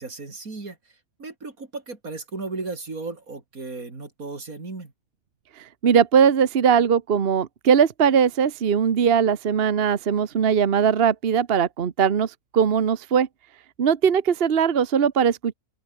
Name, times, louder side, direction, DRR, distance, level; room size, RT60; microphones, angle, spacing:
voice 1, 0.0-4.9, right 3 dB, 85° right, 4.1 m, -35 dB
voice 2, 5.6-13.3 13.8-15.5, right 7 dB, 45° right, 1.2 m, -20 dB
open air
omnidirectional pair, 1.5 m